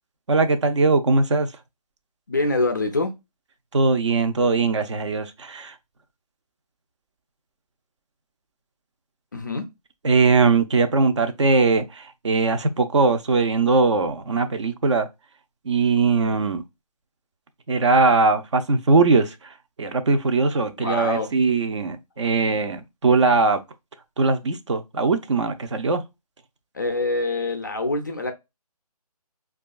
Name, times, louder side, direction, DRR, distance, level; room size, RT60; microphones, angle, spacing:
voice 1, 0.3-1.5 3.7-5.7 10.0-15.1 15.6-16.6 17.7-19.5 19.8-23.6 24.2-26.0, right 4 dB, 50° right, 0.5 m, -20 dB
voice 2, 2.3-3.1 9.3-9.7 20.8-21.3 26.7-28.3, left 2 dB, 30° left, 0.3 m, -25 dB
4.9 x 2.3 x 2.3 m
figure-of-eight pair, 155°, 20 cm